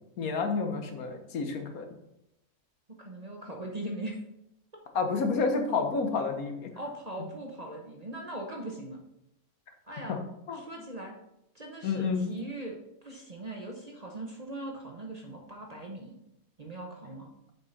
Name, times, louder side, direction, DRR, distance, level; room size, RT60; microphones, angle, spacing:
voice 1, 0.2-1.9 4.9-6.7 10.1-10.6 11.8-12.2, left 4 dB, 75° left, 5 dB, 1.5 m, -30 dB
voice 2, 3.0-4.2 6.8-9.0 9.9-10.2 10.5-11.1 11.5-12.8 13.0-16.1 16.6-17.3, right 1 dB, 30° right, 1 dB, 0.9 m, -40 dB
7.4 x 5.4 x 4.1 m, 0.83 s
omnidirectional pair, 1.5 m